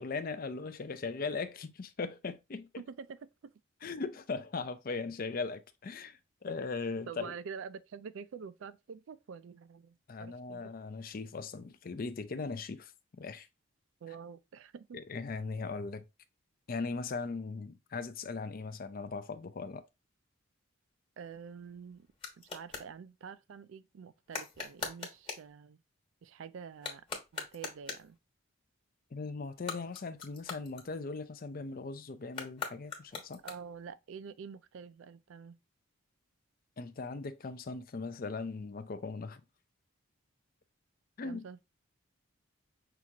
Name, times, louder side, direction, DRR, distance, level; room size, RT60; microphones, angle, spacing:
voice 1, 0.0-2.7 3.8-7.3 10.1-12.9 13.2-13.5 14.9-16.0 16.7-19.8 29.1-33.4 36.8-39.4 41.2-41.4, left 4 dB, 45° left, 0.5 m, -39 dB
voice 2, 2.8-3.3 7.1-10.7 14.0-15.0 21.2-22.1 22.4-25.8 26.2-27.1 27.3-28.2 33.4-35.6 41.2-41.6, right 6 dB, 65° right, 0.4 m, -47 dB
sound 1, 21.2-22.9 24.3-25.5 26.7-28.2 29.5-31.3 32.3-33.9, left 5 dB, 25° left, 1.2 m, -43 dB
5.7 x 2.5 x 2.8 m
head